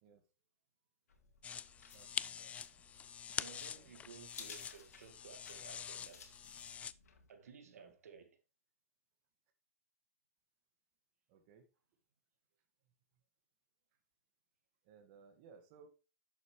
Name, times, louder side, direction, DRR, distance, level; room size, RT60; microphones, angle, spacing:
sound 1, 1.1-7.3, left 5 dB, 85° left, 2.1 m, -58 dB
sound 2, 1.4-6.9, left 8 dB, 15° left, 0.3 m, -45 dB
voice 1, 1.9-2.8 3.7-3.9 7.6-7.9 11.3-11.7 14.8-15.9, right 6 dB, 45° right, 1.7 m, -62 dB
voice 2, 3.4-6.4 7.3-8.4, right 6 dB, 80° right, 1.9 m, -56 dB
11.0 x 7.2 x 3.1 m
hypercardioid pair, 130°, 8 cm